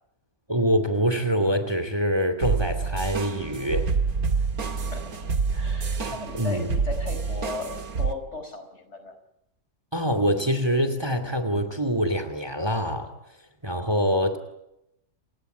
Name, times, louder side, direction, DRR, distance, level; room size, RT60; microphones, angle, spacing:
voice 1, 0.5-3.9 6.0-6.7 9.9-13.1 13.6-14.4, equal, 15° right, 10 dB, 2.6 m, -25 dB
sound 1, 2.4-8.1, right 5 dB, 75° right, 2.4 m, -27 dB
voice 2, 4.8-5.1 5.5-9.1 13.6-14.0, left 3 dB, 50° left, 8 dB, 5.0 m, -37 dB
29.0 x 17.5 x 9.3 m, 0.84 s
omnidirectional pair, 1.6 m